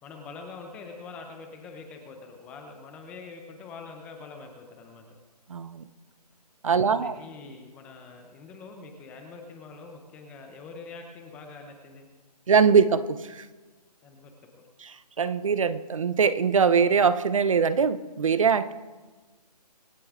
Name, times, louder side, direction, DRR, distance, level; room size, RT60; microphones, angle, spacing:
voice 1, 0.0-5.1 6.6-12.1 14.0-14.3, left 4 dB, 5° left, 4 dB, 0.6 m, -44 dB
voice 2, 5.5-5.9 6.6-7.1 12.5-13.0 13.3-13.4 14.8-14.9 15.2-18.7, right 6 dB, 50° right, 14 dB, 0.8 m, -22 dB
25.0 x 9.6 x 3.7 m, 1.3 s
hypercardioid pair, 160°, 21 cm